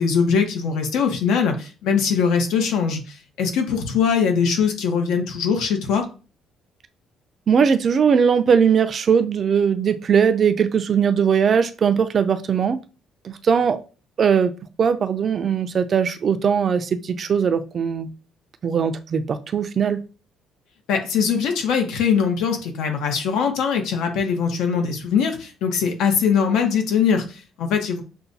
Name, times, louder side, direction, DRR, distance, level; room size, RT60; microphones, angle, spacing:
voice 1, 0.0-6.0 20.9-28.0, left 6 dB, 85° left, 1.0 m, -21 dB
voice 2, 7.5-12.8 13.2-13.8 14.2-14.5 14.8-18.1 18.6-20.0, right 7 dB, 35° right, 0.4 m, -19 dB
6.7 x 2.3 x 2.7 m
cardioid pair, 170°, 0 cm